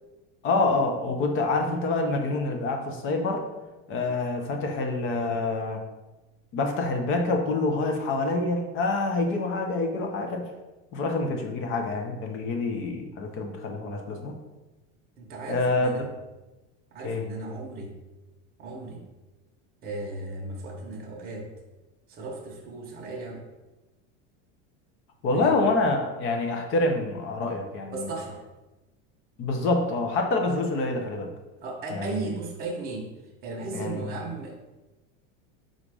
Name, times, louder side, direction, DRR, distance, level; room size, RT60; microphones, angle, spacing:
voice 1, 0.4-3.4 3.9-5.8 6.5-10.5 10.9-14.3 15.5-15.9 17.0-17.2 25.2-28.1 29.4-31.3 31.9-32.2 33.7-34.2, left 3 dB, 35° left, 3 dB, 0.6 m, -26 dB
voice 2, 15.2-16.0 16.9-17.9 18.6-19.0 19.8-21.5 22.1-23.4 25.3-25.6 27.9-28.4 31.6-33.1 33.4-34.6, right 3 dB, 25° right, -1 dB, 0.8 m, -36 dB
4.0 x 2.5 x 4.7 m, 1.1 s
supercardioid pair, 145°, 35 cm